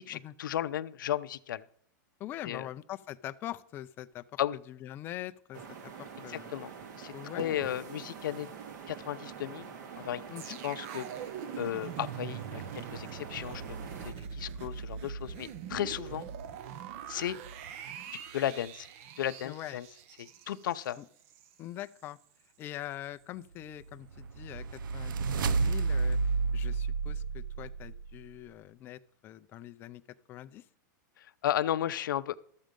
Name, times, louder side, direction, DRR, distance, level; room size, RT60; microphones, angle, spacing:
voice 1, 0.0-1.6 2.4-2.7 4.4-4.6 6.3-6.7 7.0-8.5 8.9-11.1 11.6-13.6 14.0-16.3 17.1-17.4 18.3-18.9 19.2-19.9 20.2-21.0 31.2-32.3, left 11 dB, 80° left, 11 dB, 0.6 m, -34 dB
voice 2, 2.2-4.4 4.7-6.5 7.1-7.6 10.3-10.6 19.4-19.8 21.0-21.1 21.6-22.2 22.6-30.0 30.3-30.6, left 13 dB, 20° left, 11 dB, 0.4 m, -43 dB
sound 1, 5.5-14.1, right 7 dB, 65° right, 2.0 m, -45 dB
sound 2, 10.4-21.5 21.9-22.0, right 7 dB, 40° right, 0.7 m, -43 dB
sound 3, 23.9-28.2, right 4 dB, 85° right, 0.6 m, -30 dB
13.0 x 7.4 x 5.2 m, 0.66 s
supercardioid pair, 165°, 11 cm